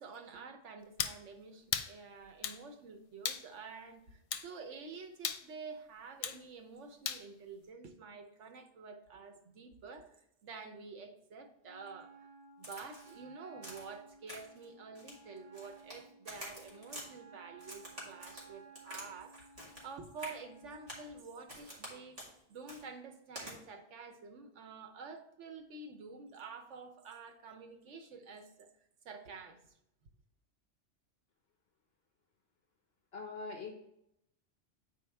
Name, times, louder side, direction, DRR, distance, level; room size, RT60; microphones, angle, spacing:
voice 1, 0.0-12.3 12.6-22.2 22.5-28.7 29.0-29.8, right 4 dB, 85° right, 6 dB, 1.2 m, -49 dB
sound 1, 1.0-1.2 1.7-1.9 2.4-2.6 3.2-3.5 4.3-4.5 5.2-5.4 6.2-6.4 7.1-7.2, left 8 dB, 90° left, 0.9 m, -36 dB
Wind instrument woodwind instrument, 11.6-21.2, right 4 dB, 25° left, 1.8 m, -57 dB
Crack, 12.6-13.2 13.6-13.9 14.3-14.6 15.0-16.0 16.3-17.1 17.6-19.1 19.3-19.9 20.2-20.4 20.9-21.1 21.5-21.9 22.2-22.3 22.7-22.8 23.4-23.5, equal, 30° right, 2.1 m, -47 dB
voice 2, 33.1-33.7, left 4 dB, 60° left, 2 dB, 1.0 m, -42 dB
8.7 x 4.7 x 3.5 m, 0.79 s
omnidirectional pair, 1.2 m